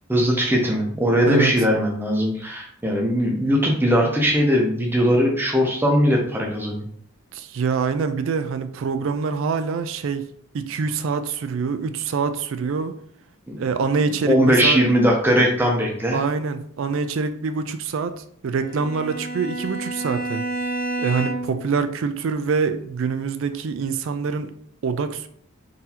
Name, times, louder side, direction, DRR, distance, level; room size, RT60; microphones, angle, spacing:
voice 1, 0.1-6.9 13.5-13.6 14.2-16.2, equal, 10° right, 0.6 m, -20 dB
voice 2, 7.3-10.3 10.5-12.9 13.6-14.8 16.1-20.4 21.0-24.5 24.8-25.3, right 5 dB, 65° right, 0.3 m, -25 dB
Bowed string instrument, 18.6-21.7, right 2 dB, 45° left, 0.8 m, -29 dB
3.8 x 2.6 x 2.8 m
head